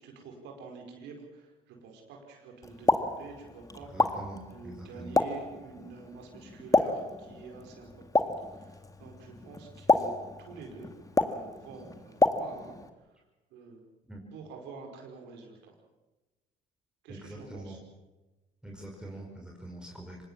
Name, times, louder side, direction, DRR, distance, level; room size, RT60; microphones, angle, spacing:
voice 1, 0.0-3.9 4.5-7.9 8.2-10.1 10.4-10.9 11.3-12.7 13.5-13.8 14.3-15.7 17.0-17.8, right 4 dB, 80° right, 2 dB, 4.9 m, -47 dB
Explosion, 2.6-12.9, left 3 dB, 20° left, 2.2 m, -30 dB
voice 2, 3.9-5.1 14.1-14.2 17.1-17.8 18.6-20.2, right 1 dB, 5° right, 0 dB, 5.1 m, -44 dB
25.0 x 20.0 x 7.4 m, 1.1 s
supercardioid pair, 75°, 18 cm